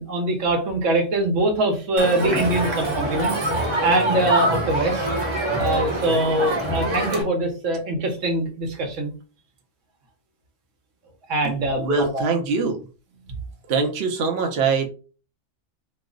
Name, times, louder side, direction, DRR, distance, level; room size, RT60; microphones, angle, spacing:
voice 1, 0.0-3.4 3.8-5.1 5.6-9.1 11.3-12.2 13.3-13.4, right 1 dB, 80° right, 2 dB, 1.2 m, -23 dB
Crowd, 2.0-7.2, right 1 dB, 30° right, 0.7 m, -24 dB
voice 2, 11.8-12.8 13.7-14.9, right 4 dB, 60° right, 3 dB, 0.8 m, -23 dB
3.0 x 2.0 x 3.7 m, 0.35 s
omnidirectional pair, 1.3 m